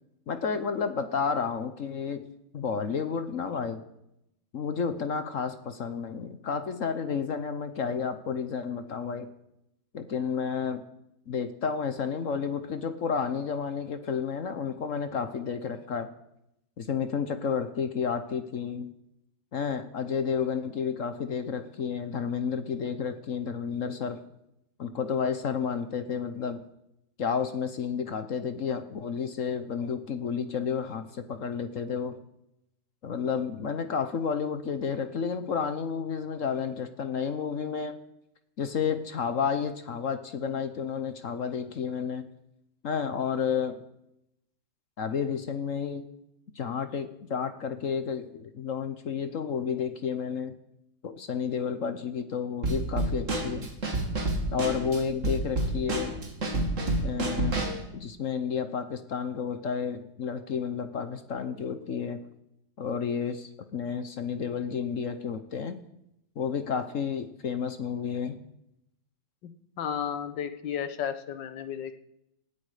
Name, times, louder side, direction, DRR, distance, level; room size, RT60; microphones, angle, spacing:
voice 1, 0.3-2.3 2.5-3.8 4.5-9.3 9.9-10.8 11.3-16.1 16.8-18.9 19.5-24.2 24.8-26.6 27.2-32.2 33.0-38.0 38.6-42.3 42.8-43.8 45.0-46.1 46.5-50.5 51.0-53.7 54.5-56.2 57.0-57.6 57.9-62.2 62.8-65.8 66.4-68.4, left 6 dB, 50° left, 10 dB, 1.1 m, -31 dB
Drum kit / Snare drum, 52.6-57.8, right 1 dB, 40° right, 2.6 m, -29 dB
voice 2, 69.4-71.9, left 8 dB, 70° left, 10 dB, 1.7 m, -33 dB
19.0 x 13.0 x 5.0 m, 0.81 s
omnidirectional pair, 2.1 m